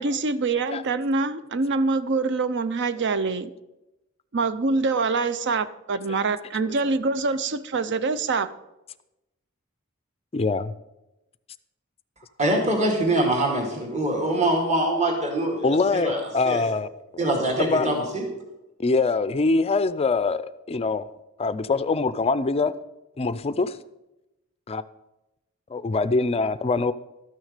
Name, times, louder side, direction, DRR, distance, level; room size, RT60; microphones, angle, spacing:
voice 1, 0.0-3.5 4.3-8.5, right 3 dB, 55° right, 14 dB, 0.6 m, -25 dB
voice 2, 10.3-10.7 13.5-13.6 15.4-16.9 17.1-17.3 17.6-17.9 18.8-21.1 21.4-22.7 23.2-23.8 24.7-24.8 25.7-26.9, left 3 dB, 25° left, 14 dB, 0.4 m, -24 dB
voice 3, 12.4-16.6 17.2-18.3, right 1 dB, 35° right, 0 dB, 2.2 m, -24 dB
13.0 x 6.3 x 6.6 m, 0.96 s
head